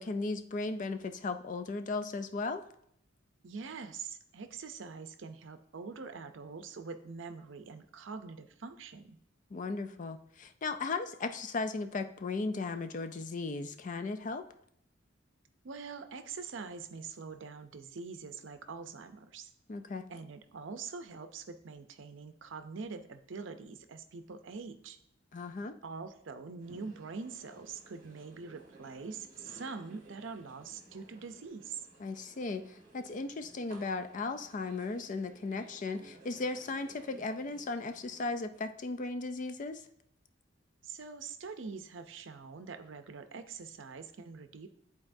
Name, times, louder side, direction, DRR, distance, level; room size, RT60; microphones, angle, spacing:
voice 1, 0.0-2.6 9.5-14.4 19.7-20.0 25.3-25.8 32.0-39.8, left 3 dB, 40° left, 9 dB, 0.4 m, -36 dB
voice 2, 3.4-9.2 15.6-19.5 20.1-25.0 25.8-31.8 40.8-44.7, right 5 dB, 70° right, 9 dB, 0.6 m, -44 dB
sound 1, 26.6-38.3, right 2 dB, 45° right, 1.2 m, -57 dB
11.0 x 4.1 x 2.6 m, 0.71 s
head